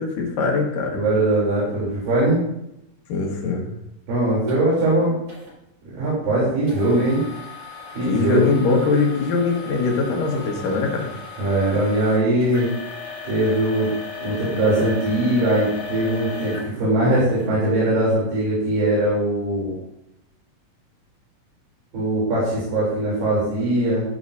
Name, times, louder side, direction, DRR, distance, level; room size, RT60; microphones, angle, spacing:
voice 1, 0.0-1.0 3.1-3.7 8.1-11.1, left 4 dB, 75° left, 1 dB, 3.3 m, -22 dB
voice 2, 0.9-2.4 4.1-5.2 6.0-7.2 7.9-8.5 11.4-12.7 13.2-13.9 14.2-19.7 21.9-24.0, right 1 dB, 80° right, -7 dB, 5.0 m, -21 dB
sound 1, 4.5-4.6 5.3-5.5 6.7-17.5 18.1-18.2 18.8-18.9, left 4 dB, 45° right, 5.3 m, -36 dB
12.0 x 8.9 x 2.7 m, 0.82 s
omnidirectional pair, 3.9 m